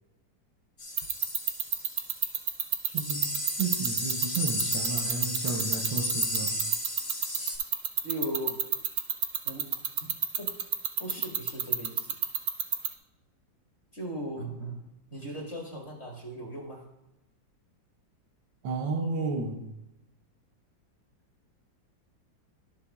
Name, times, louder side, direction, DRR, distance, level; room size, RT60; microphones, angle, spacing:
sound 1, 0.8-2.2 2.6-2.7 2.9-7.6, left 1 dB, 55° left, 1.9 m, -33 dB
sound 2, 1.0-12.9, right 8 dB, 65° right, 0.8 m, -27 dB
voice 1, 2.8-6.6 18.6-19.7, right 4 dB, 90° right, 2 dB, 1.5 m, -33 dB
voice 2, 8.0-8.6 9.4-9.7 10.0-10.1 10.4-10.5 11.0-12.1 13.9-14.8 15.1-16.8, right 1 dB, 40° left, -2 dB, 1.5 m, -37 dB
12.0 x 7.0 x 2.3 m, 0.95 s
omnidirectional pair, 2.1 m